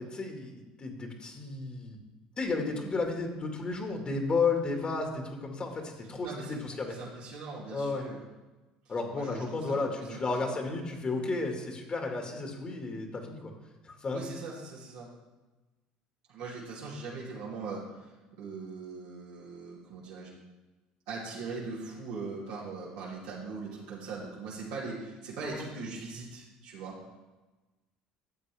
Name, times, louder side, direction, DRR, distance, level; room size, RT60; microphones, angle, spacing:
voice 1, 0.0-2.0 2.4-6.9 7.7-8.0 8.9-13.5 13.8-14.2 25.4-25.7, left 3 dB, 35° left, 3 dB, 1.9 m, -33 dB
voice 2, 6.2-8.2 8.8-10.6 14.1-15.1 16.3-20.3 21.1-27.0, right 4 dB, 80° right, -7 dB, 2.7 m, -41 dB
12.5 x 7.8 x 3.5 m, 1.1 s
supercardioid pair, 85°, 3 cm